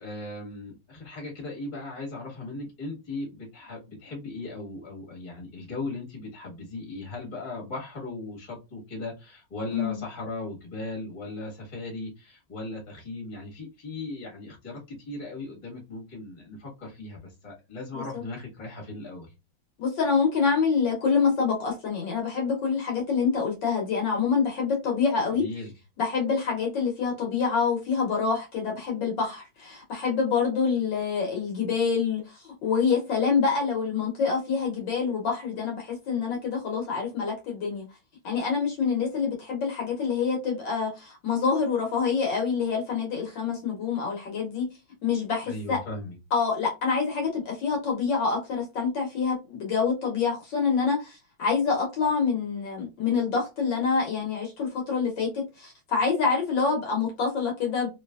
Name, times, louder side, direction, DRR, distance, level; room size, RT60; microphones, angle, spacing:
voice 1, 0.0-19.3 25.3-25.7 45.4-46.1, left 2 dB, 25° left, 1.2 m, -38 dB
voice 2, 9.7-10.0 17.9-18.2 19.8-25.4 26.0-37.8 38.2-44.7 45.0-45.8 46.3-57.9, left 5 dB, 65° left, 1.5 m, -26 dB
3.2 x 2.9 x 2.3 m
omnidirectional pair, 2.3 m